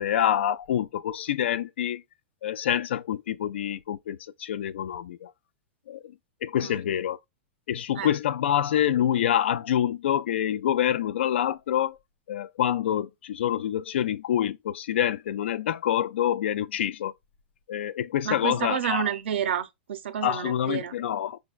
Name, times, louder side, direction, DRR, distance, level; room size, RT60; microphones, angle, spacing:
voice 1, 0.0-2.0 2.4-5.3 5.9-6.1 6.4-7.2 7.7-12.0 12.3-17.1 17.7-19.1 20.2-21.4, left 10 dB, 90° left, 0.3 m, -26 dB
voice 2, 18.2-21.0, right 9 dB, 85° right, 0.5 m, -30 dB
5.0 x 2.2 x 2.3 m
supercardioid pair, 170°, 6 cm